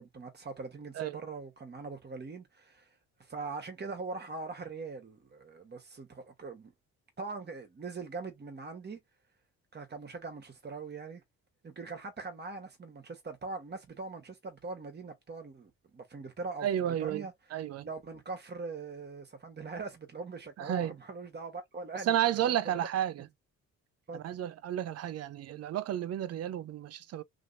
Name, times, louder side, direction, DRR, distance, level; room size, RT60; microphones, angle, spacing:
voice 1, 0.0-2.9 3.2-6.7 7.2-9.0 9.7-11.2 11.6-17.3 17.8-22.9 23.2-23.3 24.1-24.2, right 4 dB, 35° right, 1.3 m, -42 dB
voice 2, 16.6-17.9 20.6-20.9 22.0-23.3 24.1-27.2, right 11 dB, 55° right, 0.5 m, -32 dB
2.9 x 2.8 x 2.6 m
cardioid pair, 90°, 30 cm